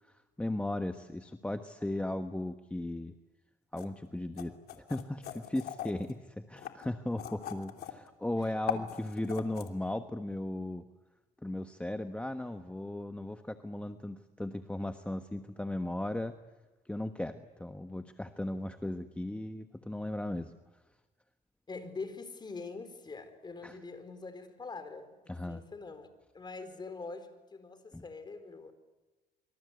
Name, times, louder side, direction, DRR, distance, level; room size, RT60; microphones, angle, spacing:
voice 1, 0.1-3.1 3.7-10.8 11.4-16.4 16.8-20.5 23.6-23.8 25.3-25.6 27.9-28.0, left 1 dB, 5° left, 7 dB, 1.2 m, -37 dB
sound 1, 3.8-3.9 4.4-6.1 6.6-8.1 8.4-9.7, left 11 dB, 65° left, 3.2 m, -39 dB
voice 2, 8.4-8.8 21.7-25.1 25.5-26.1 26.3-28.7, left 4 dB, 25° left, 10 dB, 4.5 m, -44 dB
26.0 x 26.0 x 8.3 m, 1.2 s
cardioid pair, 110°, 17 cm